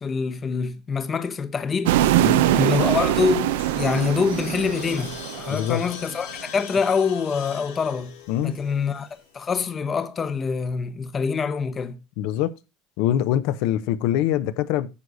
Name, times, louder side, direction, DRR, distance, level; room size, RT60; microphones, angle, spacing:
voice 1, 0.0-8.1 8.4-9.1 9.3-12.0, left 5 dB, 20° left, 0.9 m, -25 dB
sound 1, 1.8-6.1, right 13 dB, 90° right, 0.8 m, -22 dB
sound 2, 3.3-9.5, left 10 dB, 75° left, 3.8 m, -42 dB
voice 2, 5.5-5.8 8.3-8.5 12.2-12.5 13.0-14.9, left 12 dB, 60° left, 0.9 m, -23 dB
9.8 x 6.4 x 4.1 m
cardioid pair, 160°, 0 cm